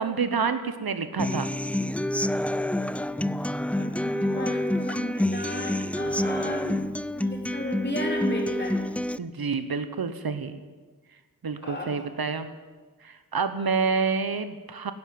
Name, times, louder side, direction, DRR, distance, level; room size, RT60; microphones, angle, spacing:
voice 1, 0.0-1.5 9.2-10.6 11.4-12.5 13.0-14.9, right 5 dB, 85° right, 10 dB, 0.9 m, -28 dB
Human voice / Acoustic guitar, 1.2-9.2, left 1 dB, 5° left, 0.4 m, -28 dB
voice 2, 3.7-8.8 11.6-12.0, equal, 30° left, 0 dB, 3.6 m, -34 dB
13.5 x 11.0 x 9.3 m, 1.4 s
wide cardioid pair, 70°, 36 cm